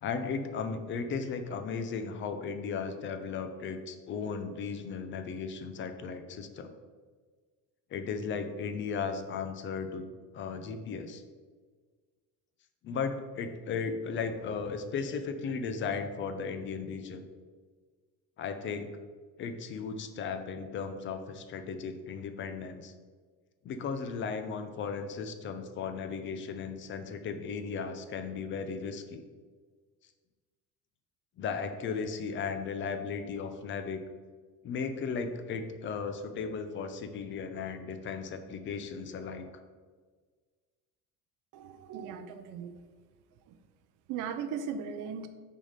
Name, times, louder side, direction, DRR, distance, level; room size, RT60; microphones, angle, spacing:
voice 1, 0.0-6.7 7.9-10.1 10.3-11.2 12.8-17.2 18.4-18.9 19.4-22.9 23.6-29.3 31.4-34.0 34.6-39.5, left 5 dB, 35° left, 8 dB, 0.5 m, -36 dB
voice 2, 41.5-42.7 43.5-43.6 44.1-45.3, right 7 dB, 60° right, 9 dB, 0.6 m, -38 dB
6.2 x 4.1 x 5.1 m, 1.5 s
cardioid pair, 165°, 36 cm